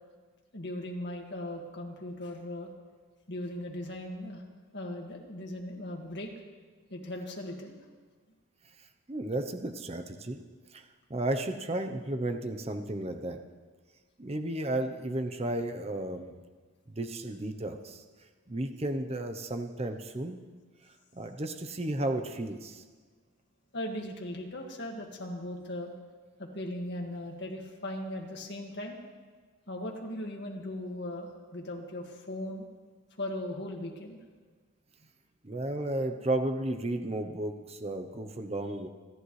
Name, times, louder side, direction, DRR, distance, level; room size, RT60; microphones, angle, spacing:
voice 1, 0.5-2.7 3.3-4.4 4.7-6.3 6.9-7.7 23.7-25.9 26.4-29.0 29.7-32.6 33.2-34.2, left 1 dB, 55° left, 1 dB, 2.0 m, -38 dB
voice 2, 9.1-10.4 10.7-13.4 14.2-16.3 17.0-18.0 18.5-20.4 21.1-22.8 35.4-38.9, right 1 dB, 30° right, 6 dB, 0.7 m, -33 dB
29.5 x 11.0 x 3.3 m, 1.5 s
head